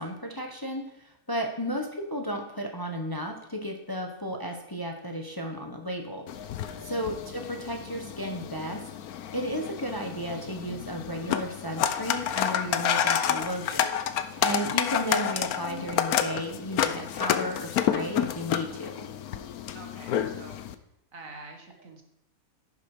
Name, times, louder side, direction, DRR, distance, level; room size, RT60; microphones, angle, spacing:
voice 1, 0.0-6.3 6.8-8.9 9.3-13.9 14.4-19.1, equal, 15° left, 3 dB, 1.3 m, -34 dB
sound 1, 6.3-20.7, left 9 dB, 85° left, 1.2 m, -30 dB
voice 2, 6.5-7.1 19.7-20.8 21.1-22.0, right 3 dB, 65° right, 3 dB, 2.0 m, -47 dB
11.0 x 9.8 x 5.0 m, 0.81 s
omnidirectional pair, 1.5 m